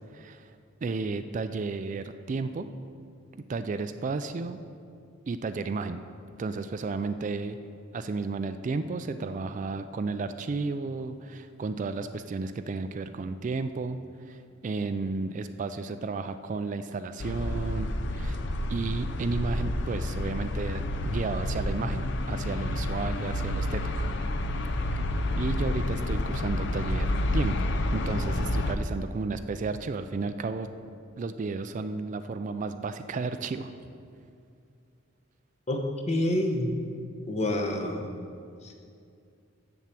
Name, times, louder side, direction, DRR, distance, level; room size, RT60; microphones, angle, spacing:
voice 1, 0.1-0.5 0.8-2.7 3.5-4.6 5.3-6.0 6.4-7.6 7.9-14.0 14.3-18.4 18.7-24.1 25.4-30.7 31.2-33.7, right 4 dB, 40° right, 10 dB, 0.3 m, -33 dB
sound 1, 17.2-28.8, left 1 dB, 60° left, 0.5 m, -29 dB
voice 2, 35.7-36.7 37.3-38.0, left 1 dB, 35° left, 3 dB, 0.9 m, -27 dB
7.4 x 7.0 x 7.5 m, 2.4 s
head